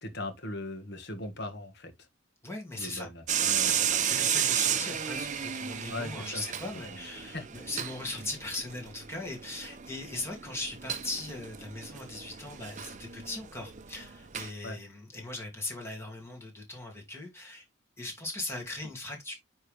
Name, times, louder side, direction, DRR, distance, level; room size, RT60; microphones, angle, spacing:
voice 1, 0.0-1.9 2.8-3.8 5.9-6.4 7.3-7.4 14.6-14.8, left 2 dB, 55° left, 1.5 m, -39 dB
voice 2, 2.4-3.1 3.5-17.7 18.0-19.3, left 2 dB, 10° left, 2.3 m, -39 dB
sound 1, 3.3-14.5, right 9 dB, 35° right, 0.6 m, -33 dB
9.4 x 3.6 x 3.3 m
head